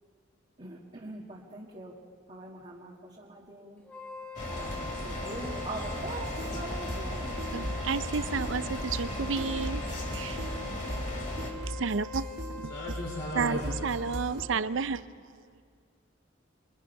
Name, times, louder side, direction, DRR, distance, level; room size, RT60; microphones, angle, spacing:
voice 1, 0.6-1.9 2.3-3.8 4.5-7.4, right 2 dB, 35° right, 1.9 m, -42 dB
Wind instrument woodwind instrument, 3.8-14.4, left 4 dB, 10° left, 2.4 m, -43 dB
sound 1, 4.4-11.5, left 1 dB, 40° left, 3.2 m, -37 dB
sound 2, 6.2-14.4, right 1 dB, 55° right, 2.9 m, -39 dB
voice 2, 7.5-9.8 10.1-10.4 11.7-12.3 12.6-12.7 13.4-15.1, right 5 dB, 80° right, 0.6 m, -31 dB
voice 3, 12.6-14.3, equal, 70° left, 3.5 m, -38 dB
26.0 x 22.5 x 5.6 m
head